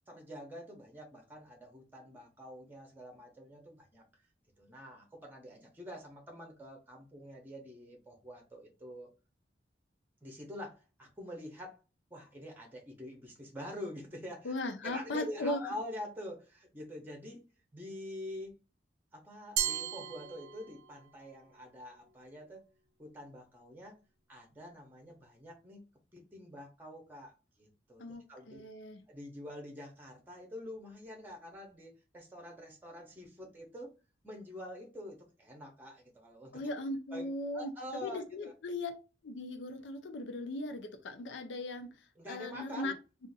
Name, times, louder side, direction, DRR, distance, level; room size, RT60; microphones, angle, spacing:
voice 1, 0.1-4.0 4.6-9.1 10.2-11.8 12.1-14.5 14.8-17.4 17.7-18.5 19.1-22.6 23.0-24.0 24.3-25.8 26.1-28.6 29.1-33.9 34.2-36.6 37.1-37.3 37.5-38.5 42.2-43.0, left 1 dB, 10° right, 2 dB, 0.7 m, -46 dB
voice 2, 14.4-15.6 28.0-29.0 36.5-37.7 38.0-38.9 39.2-41.9 42.3-42.9, left 2 dB, 85° left, 7 dB, 0.5 m, -38 dB
Glass, 19.6-21.0, right 10 dB, 70° right, 0.4 m, -35 dB
2.5 x 2.5 x 3.8 m, 0.31 s
head